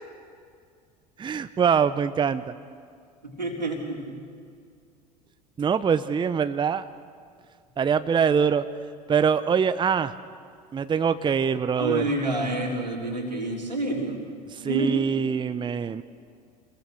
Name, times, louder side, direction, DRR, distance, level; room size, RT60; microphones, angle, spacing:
voice 1, 1.2-2.5 5.6-6.8 7.8-8.6 9.1-10.1 10.7-12.1 14.5-16.0, right 7 dB, 20° right, 12 dB, 0.8 m, -23 dB
voice 2, 3.2-4.1 11.8-14.2 14.6-15.1, right 2 dB, 90° right, -1 dB, 3.8 m, -28 dB
27.5 x 21.5 x 6.6 m, 2.2 s
figure-of-eight pair, 70°, 21 cm